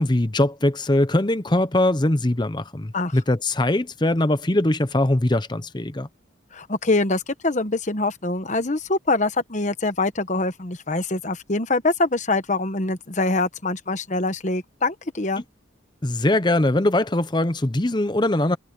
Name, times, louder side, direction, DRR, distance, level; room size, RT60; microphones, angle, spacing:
voice 1, 0.0-6.1 16.0-18.6, left 1 dB, 20° left, 0.8 m, -21 dB
voice 2, 6.5-15.4, left 2 dB, 40° left, 1.1 m, -24 dB
head